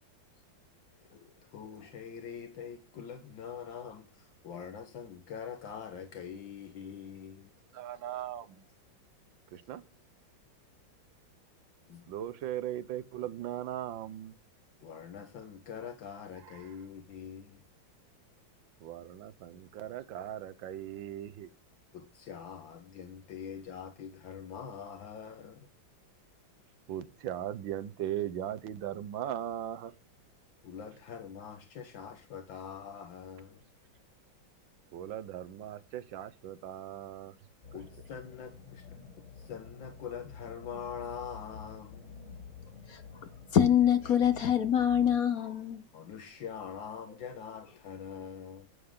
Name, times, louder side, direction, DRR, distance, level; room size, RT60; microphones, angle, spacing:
voice 1, 1.5-7.5 11.9-12.0 14.8-17.6 21.9-25.7 30.6-33.6 37.7-39.0 39.4-42.2 45.9-48.7, left 7 dB, 75° left, 1.9 m, -44 dB
voice 2, 7.7-8.7 9.5-9.8 12.1-14.3 16.4-16.8 18.8-21.5 26.9-29.9 34.9-37.3, right 11 dB, 75° right, 1.6 m, -38 dB
sound 1, 37.6-45.2, left 5 dB, 35° left, 2.6 m, -49 dB
voice 3, 43.5-45.9, left 9 dB, 55° left, 1.2 m, -25 dB
11.5 x 9.7 x 3.8 m
omnidirectional pair, 2.1 m